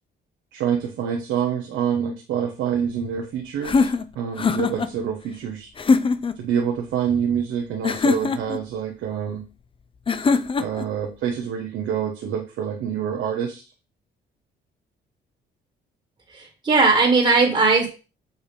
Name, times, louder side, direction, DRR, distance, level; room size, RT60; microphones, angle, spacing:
voice 1, 0.5-3.9 4.1-5.7 6.4-9.4 10.6-13.6, right 8 dB, 85° right, 2 dB, 1.0 m, -26 dB
sound 1, 3.6-4.9 5.8-6.4 7.8-8.6 10.1-10.9, left 4 dB, 25° left, 0.5 m, -21 dB
voice 2, 16.3-17.9, right 3 dB, 30° right, 1 dB, 1.6 m, -18 dB
6.9 x 2.7 x 5.1 m, 0.32 s
cardioid pair, 90°, 20 cm